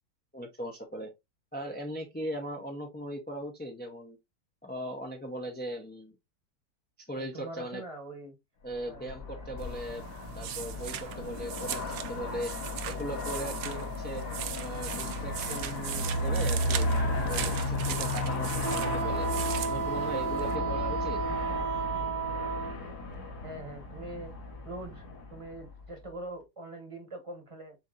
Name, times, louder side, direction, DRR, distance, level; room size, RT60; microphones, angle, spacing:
voice 1, 0.3-1.1 1.5-4.2 4.6-6.2 7.0-7.8 8.6-10.1 10.3-12.6 12.8-14.2 14.6-16.9 17.2-19.3 19.7-21.2, right 1 dB, 15° left, 0.3 m, -39 dB
voice 2, 7.2-8.4 8.9-9.0 23.4-25.0 25.3-27.8, right 2 dB, 25° right, 1.0 m, -43 dB
Aircraft, 8.8-26.1, left 2 dB, 75° left, 1.8 m, -34 dB
sound 1, 9.6-20.6, right 10 dB, 75° right, 1.0 m, -39 dB
Wind instrument woodwind instrument, 18.6-22.8, right 6 dB, 55° right, 1.4 m, -32 dB
7.0 x 2.8 x 2.5 m
omnidirectional pair, 1.7 m